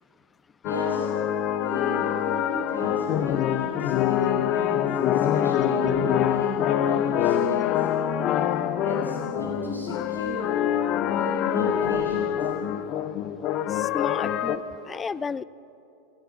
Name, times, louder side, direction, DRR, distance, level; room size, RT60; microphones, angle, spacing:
voice 1, 0.6-1.1 1.6-7.9 8.8-10.6 11.0-12.5, right 1 dB, 90° left, -3 dB, 5.2 m, -35 dB
sound 1, 0.6-14.6, left 10 dB, 35° left, 0.8 m, -25 dB
voice 2, 13.7-15.4, left 5 dB, 15° left, 21 dB, 0.4 m, -32 dB
28.0 x 17.5 x 6.0 m, 2.8 s
figure-of-eight pair, 90°, 0 cm